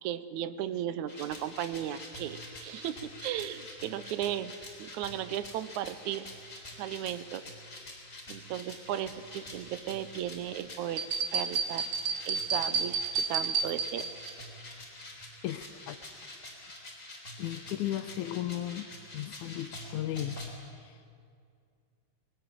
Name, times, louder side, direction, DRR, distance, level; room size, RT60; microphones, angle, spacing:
voice 1, 0.0-6.3 6.8-7.4 8.3-11.9 12.3-14.1, right 11 dB, 75° right, 14 dB, 2.1 m, -36 dB
sound 1, 1.1-20.5, left 1 dB, 25° left, 4.1 m, -46 dB
sound 2, 11.0-14.3, right 5 dB, 50° right, 2.3 m, -31 dB
voice 2, 15.4-16.0 17.4-18.9 19.1-20.4, left 13 dB, 75° left, 13 dB, 2.2 m, -35 dB
21.5 x 19.0 x 9.2 m, 2.3 s
omnidirectional pair, 3.6 m